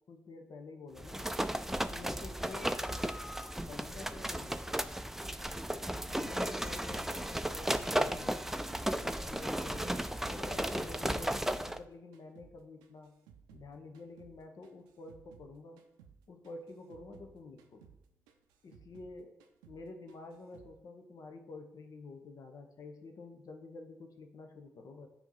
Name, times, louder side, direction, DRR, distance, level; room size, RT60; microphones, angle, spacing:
voice 1, 0.1-1.3 1.9-2.8 3.7-4.9 5.9-8.4 9.0-13.1 13.5-15.8 16.3-17.9 18.6-19.4 19.7-25.1, left 3 dB, 60° left, 5 dB, 0.8 m, -49 dB
sound 1, 1.0-11.8, right 1 dB, 5° right, 0.4 m, -35 dB
sound 2, 7.8-8.9 9.2-11.9 12.1-15.5 15.8-16.2 16.4-19.1 19.4-19.8 20.1-20.7, right 7 dB, 90° right, 0.5 m, -60 dB
7.0 x 2.8 x 5.5 m, 0.81 s
hypercardioid pair, 40°, 7 cm